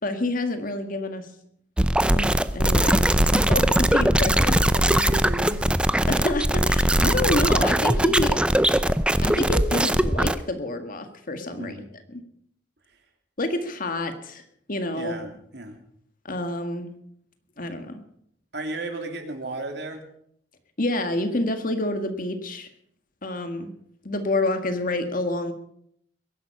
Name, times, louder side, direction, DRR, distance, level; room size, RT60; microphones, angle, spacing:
voice 1, 0.0-1.3 2.1-4.6 6.1-8.4 9.2-11.7 12.1-12.2 13.4-14.4 14.7-15.1 16.2-16.9 17.6-18.0 20.8-22.7 23.2-23.7 24.0-25.5, left 1 dB, 50° left, 7 dB, 1.8 m, -28 dB
sound 1, 1.8-10.3, right 1 dB, 5° right, 0.5 m, -20 dB
voice 2, 4.6-5.9 11.5-11.9 14.9-15.8 18.5-20.0, right 2 dB, 65° right, 4 dB, 3.1 m, -34 dB
21.5 x 11.5 x 5.5 m, 0.68 s
head